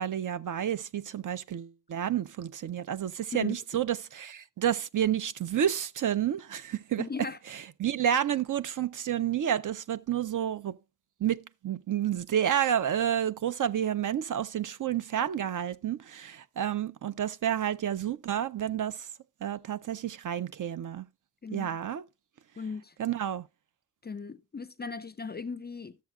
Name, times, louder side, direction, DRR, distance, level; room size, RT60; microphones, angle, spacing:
voice 1, 0.0-7.0 7.8-10.8 11.2-19.1 19.4-21.1 21.5-22.0 23.0-23.4, right 10 dB, 50° right, 0.4 m, -30 dB
voice 2, 7.0-7.4 21.4-21.8 22.6-22.9 24.0-26.0, left 5 dB, 25° left, 0.3 m, -37 dB
13.0 x 7.2 x 2.3 m
wide cardioid pair, 120°, 40 cm